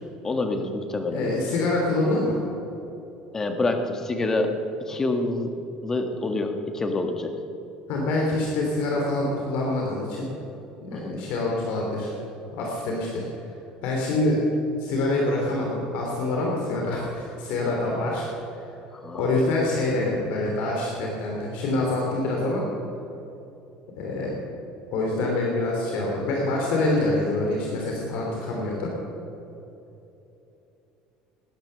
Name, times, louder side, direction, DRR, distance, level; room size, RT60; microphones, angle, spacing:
voice 1, 0.2-1.2 3.3-5.5 5.8-7.3 10.9-11.2 18.9-19.5, left 2 dB, 20° left, 6 dB, 1.4 m, -27 dB
voice 2, 1.1-2.4 7.9-10.3 10.8-12.1 12.5-13.2 13.8-14.4 14.8-18.3 19.1-22.6 24.0-24.4 24.9-28.9, left 2 dB, 70° left, -1 dB, 3.1 m, -26 dB
19.0 x 10.5 x 6.7 m, 3.0 s
cardioid pair, 150°, 3 cm